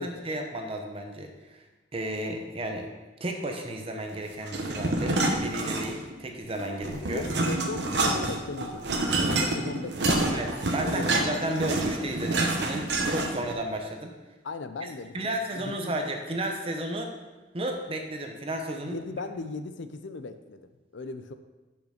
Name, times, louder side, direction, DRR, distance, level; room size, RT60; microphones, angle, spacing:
voice 1, 0.0-1.6 1.9-2.9 3.2-7.2 10.3-14.1 15.1-17.1 17.5-19.0, right 1 dB, 30° right, 3 dB, 0.8 m, -33 dB
sound 1, 4.5-6.2 6.5-13.5, right 2 dB, 60° right, 0.9 m, -27 dB
voice 2, 6.8-10.5 10.8-11.3 14.4-15.2 15.5-15.9 18.8-21.3, left 3 dB, 75° left, 10 dB, 0.5 m, -37 dB
6.5 x 5.8 x 5.0 m, 1.2 s
head